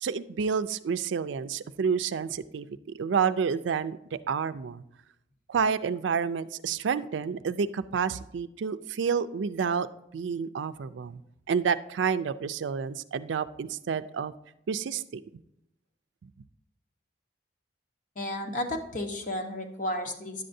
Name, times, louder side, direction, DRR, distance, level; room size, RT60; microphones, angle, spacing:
voice 1, 0.0-2.7 3.0-4.8 5.5-9.9 10.1-11.2 11.5-14.3 14.7-15.2 16.2-16.3, right 6 dB, 90° right, 13 dB, 0.4 m, -29 dB
voice 2, 18.2-20.4, left 1 dB, 45° left, 3 dB, 1.0 m, -33 dB
10.5 x 7.6 x 2.6 m, 0.81 s
head